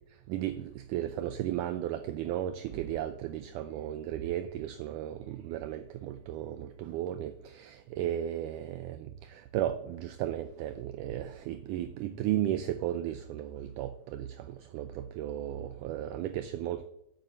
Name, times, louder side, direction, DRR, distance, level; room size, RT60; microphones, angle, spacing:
voice 1, 0.3-16.9, right 12 dB, 85° right, 1.8 m, -35 dB
11.0 x 7.3 x 7.4 m
omnidirectional pair, 4.3 m